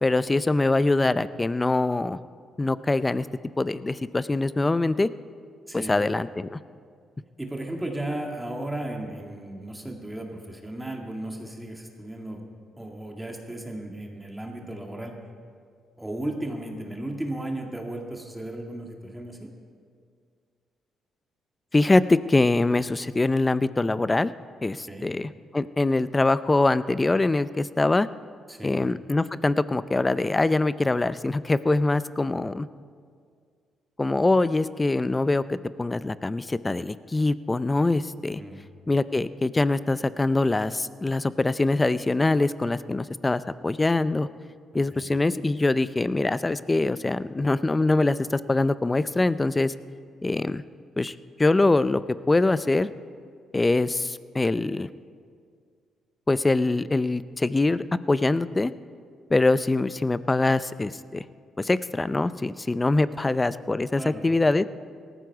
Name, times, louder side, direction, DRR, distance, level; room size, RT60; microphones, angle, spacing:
voice 1, 0.0-2.2 2.6-3.3 3.6-5.1 5.7-6.6 21.7-24.3 24.6-28.1 28.6-32.7 34.0-38.4 38.9-44.3 44.7-49.7 50.2-50.6 51.0-52.9 53.5-54.9 56.3-58.7 59.3-61.2 61.6-64.6, left 2 dB, 20° left, 15 dB, 0.5 m, -23 dB
voice 2, 5.7-6.0 7.4-12.4 12.8-15.1 16.0-19.5 24.9-25.1 28.5-28.7 38.4-38.6 44.9-45.1 64.0-64.2, right 1 dB, 10° right, 1 dB, 1.9 m, -35 dB
18.0 x 14.5 x 4.7 m, 2.1 s
cardioid pair, 90°, 0 cm